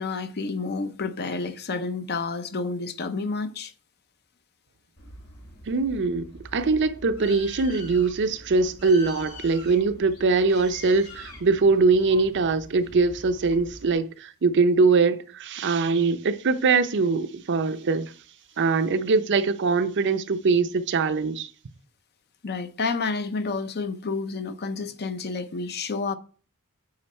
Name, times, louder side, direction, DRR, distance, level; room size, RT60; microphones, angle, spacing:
voice 1, 0.0-3.7 22.4-26.2, left 4 dB, 50° left, 0.6 m, -30 dB
Bird, 5.0-13.9, left 1 dB, 75° left, 2.9 m, -44 dB
voice 2, 5.7-18.1 18.6-21.5, right 4 dB, 55° right, 0.6 m, -22 dB
8.8 x 5.1 x 4.2 m
head